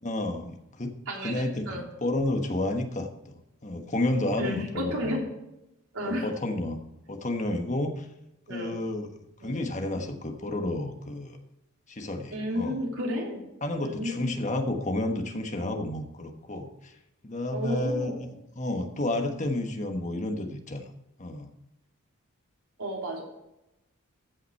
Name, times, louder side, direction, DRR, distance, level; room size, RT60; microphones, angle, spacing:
voice 1, 0.0-1.0 1.2-3.3 3.6-5.2 6.0-6.8 7.1-8.1 8.5-9.1 9.4-11.4 11.9-12.8 13.6-16.9 17.2-18.3 18.5-20.8 21.2-21.5, left 1 dB, 35° left, 5 dB, 1.2 m, -31 dB
voice 2, 1.1-1.8 4.4-5.3 5.9-6.3 8.5-8.8 9.4-9.6 12.3-13.4 13.8-14.3 17.5-18.2 22.8-23.2, equal, 70° right, -1 dB, 3.2 m, -32 dB
14.5 x 5.8 x 4.5 m, 0.89 s
head